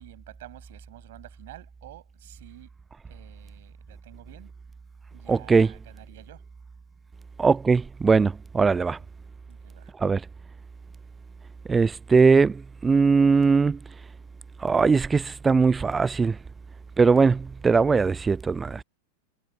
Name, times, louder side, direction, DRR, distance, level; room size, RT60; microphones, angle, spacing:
voice 1, 0.0-2.7 3.1-4.5 5.1-6.4 9.0-9.1 9.5-9.9, right 16 dB, 55° right, 6.2 m, -49 dB
voice 2, 5.3-5.7 7.4-9.0 10.0-10.2 11.7-13.8 14.6-16.4 17.0-18.8, right 4 dB, 15° right, 0.5 m, -20 dB
figure-of-eight pair, 90°, 0 cm